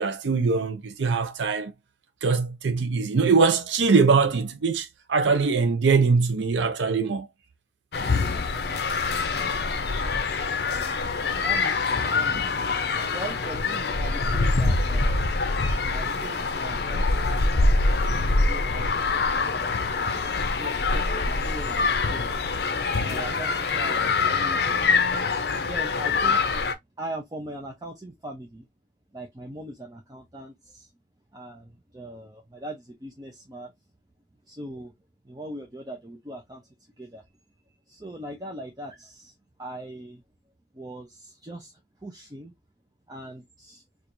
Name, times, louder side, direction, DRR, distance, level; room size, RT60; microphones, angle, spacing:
voice 1, 0.0-1.7 2.2-7.3, right 4 dB, 80° right, 0.5 m, -22 dB
sound 1, 7.9-26.7, left 3 dB, 60° left, 0.5 m, -25 dB
voice 2, 11.4-15.3 15.9-17.7 18.5-22.6 23.0-25.0 25.7-26.5 27.0-28.7 29.1-30.9 31.3-33.7 34.5-34.9 35.2-36.7 37.0-37.2 37.9-39.3 39.6-40.2 40.7-42.5 43.1-43.8, right 1 dB, 20° right, 0.5 m, -40 dB
4.4 x 2.4 x 2.5 m
head